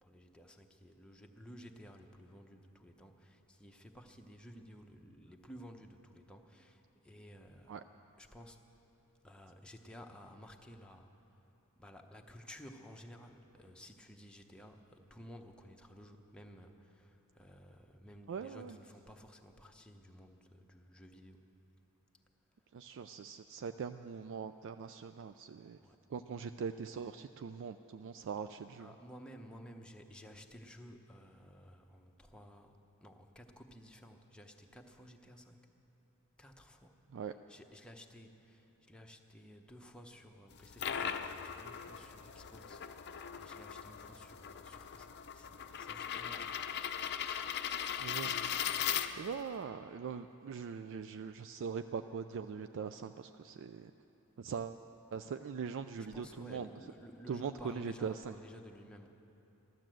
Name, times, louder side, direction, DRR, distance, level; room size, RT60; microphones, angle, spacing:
voice 1, 0.0-7.8 8.2-8.6 9.2-11.1 11.8-21.5 25.8-26.0 28.7-35.7 36.4-46.6 55.9-59.1, equal, 5° left, 2 dB, 0.8 m, -54 dB
voice 2, 18.3-18.8 22.7-25.8 26.1-28.9 37.1-37.3 48.0-48.6 49.2-53.9 54.4-54.8 55.1-56.7 57.3-58.3, right 6 dB, 60° right, 9 dB, 0.3 m, -41 dB
sound 1, 40.5-49.5, left 9 dB, 50° left, 0.6 m, -39 dB
15.0 x 12.0 x 7.6 m, 3.0 s
head